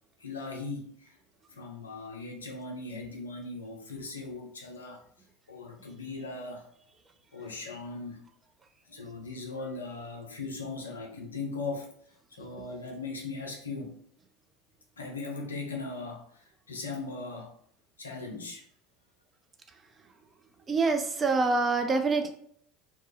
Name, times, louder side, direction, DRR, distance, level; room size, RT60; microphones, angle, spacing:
voice 1, 0.2-1.2 1.5-5.0 5.5-6.7 7.3-8.2 8.9-11.9 12.3-14.0 15.0-17.6 18.0-18.7, left 3 dB, 80° left, 1 dB, 0.4 m, -39 dB
voice 2, 20.7-22.3, right 3 dB, 25° right, 5 dB, 0.3 m, -25 dB
2.1 x 2.0 x 2.9 m, 0.62 s
figure-of-eight pair, 70°, 0 cm